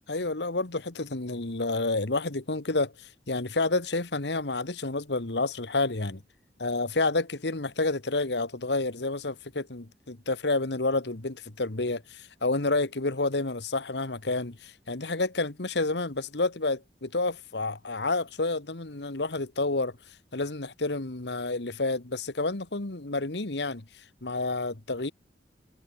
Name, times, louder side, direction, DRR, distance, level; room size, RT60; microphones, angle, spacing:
voice 1, 0.1-2.9 3.3-6.2 6.6-19.9 20.3-23.8 24.2-25.1, left 3 dB, 70° left, 1.6 m, -29 dB
head